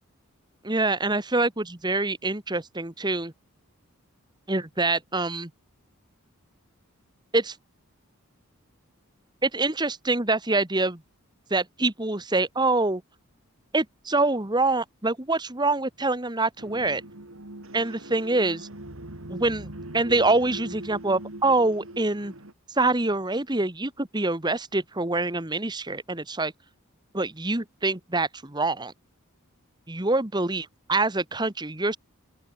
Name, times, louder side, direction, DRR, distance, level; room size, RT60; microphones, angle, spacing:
voice 1, 0.6-3.3 4.5-5.5 7.3-7.6 9.4-11.0 11.5-13.0 13.7-17.0 17.7-18.7 19.3-19.7 19.9-22.3 22.7-26.5 27.1-28.9 29.9-32.0, right 2 dB, 20° right, 1.5 m, -25 dB
sound 1, 16.6-22.5, right 1 dB, 65° right, 3.1 m, -41 dB
open air
head